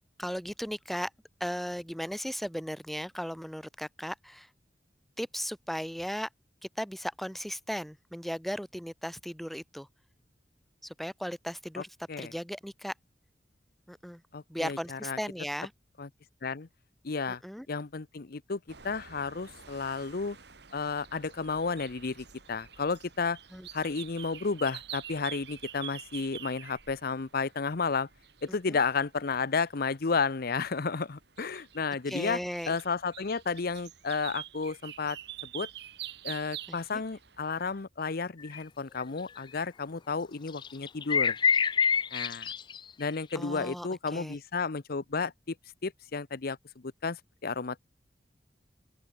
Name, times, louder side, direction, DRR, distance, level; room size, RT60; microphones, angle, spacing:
voice 1, 0.2-1.1 1.4-4.5 5.2-6.3 6.8-9.9 10.8-11.9 12.2-12.9 13.9-14.2 14.5-15.7 17.3-17.7 23.5-23.7 28.7-28.8 32.1-32.8 36.7-37.0 43.3-44.4, equal, ahead, 0.9 m, -36 dB
voice 2, 14.3-15.2 16.0-16.1 16.4-16.7 17.0-17.4 17.7-20.4 20.7-23.4 23.7-28.1 28.4-32.4 32.7-35.2 35.5-35.7 36.2-41.4 42.1-42.5 43.0-45.5 45.8-46.6 46.8-47.8, left 4 dB, 60° left, 0.8 m, -32 dB
sound 1, 18.7-37.9, right 11 dB, 70° right, 3.4 m, -47 dB
sound 2, 38.5-38.6 39.0-39.2 40.6-43.3, left 6 dB, 25° left, 0.3 m, -26 dB
open air
head